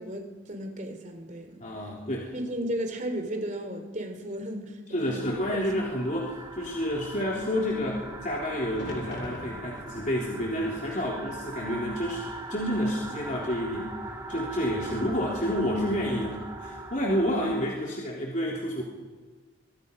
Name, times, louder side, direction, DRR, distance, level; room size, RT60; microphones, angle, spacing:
voice 1, 0.0-1.6 2.3-5.3, right 1 dB, 40° right, 3.4 m, -34 dB
voice 2, 1.6-2.3 4.9-13.9 14.3-18.8, equal, 40° left, 3.6 m, -29 dB
sound 1, 5.2-17.7, right 2 dB, 15° right, 2.8 m, -41 dB
sound 2, 8.7-12.7 13.1-13.9 15.7-16.2, left 1 dB, 60° left, 3.8 m, -45 dB
26.0 x 23.5 x 5.5 m
head